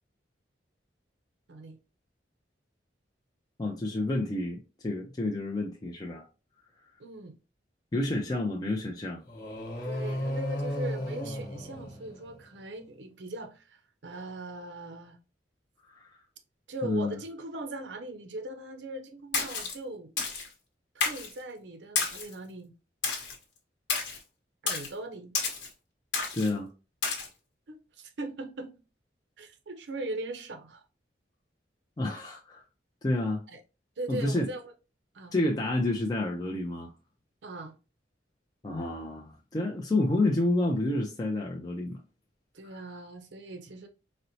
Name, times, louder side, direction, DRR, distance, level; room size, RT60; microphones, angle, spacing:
voice 1, 3.6-6.3 7.9-9.2 15.9-16.1 16.8-17.2 26.3-26.7 32.0-32.6 33.0-33.4 34.1-34.5 35.3-36.9 38.6-42.0 42.6-43.0, left 2 dB, 20° left, 0.4 m, -29 dB
voice 2, 7.0-7.3 9.8-15.2 16.7-20.1 21.0-22.7 24.6-25.3 27.7-28.7 29.4-30.8 33.5-33.6 34.0-34.6 35.1-35.3 37.4-37.7 42.5-43.9, right 2 dB, 75° right, 0.6 m, -39 dB
sound 1, 9.3-12.6, equal, 55° left, 0.9 m, -34 dB
Splash splatter, 19.3-19.7 20.2-20.5 21.0-21.3 22.0-22.3 23.0-23.4 23.9-24.2 24.7-24.9 25.3-25.7 26.1-26.5 27.0-27.3, left 5 dB, 85° left, 0.9 m, -30 dB
4.1 x 2.0 x 2.6 m
head